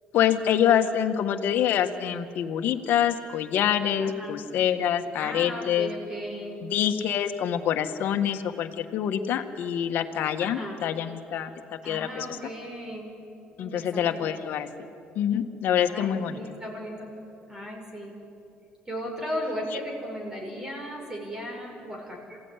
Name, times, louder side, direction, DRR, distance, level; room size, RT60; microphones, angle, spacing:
voice 1, 0.1-5.9 6.6-11.5 11.8-12.4 13.6-14.7 15.1-16.4, left 9 dB, 65° left, 5 dB, 1.5 m, -26 dB
voice 2, 4.0-4.4 5.2-6.6 10.4-10.8 11.8-13.1 13.6-14.2 15.9-17.1 17.5-18.1 18.9-22.4, equal, 15° right, 0 dB, 6.1 m, -36 dB
27.0 x 16.0 x 9.8 m, 2.7 s
cardioid pair, 115°, 4 cm